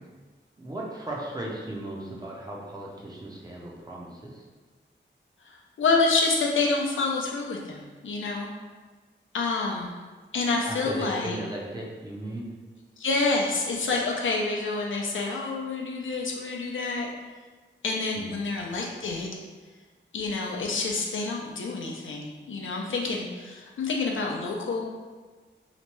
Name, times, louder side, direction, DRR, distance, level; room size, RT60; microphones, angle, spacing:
voice 1, 0.6-4.4 10.6-12.5 18.2-18.3, right 1 dB, 20° right, -3 dB, 0.5 m, -36 dB
voice 2, 5.4-8.5 9.3-9.9 10.3-11.4 13.0-17.1 17.8-19.3 20.1-24.9, left 3 dB, 85° left, -1 dB, 0.5 m, -28 dB
2.9 x 2.2 x 3.0 m, 1.3 s
wide cardioid pair, 115°, 20 cm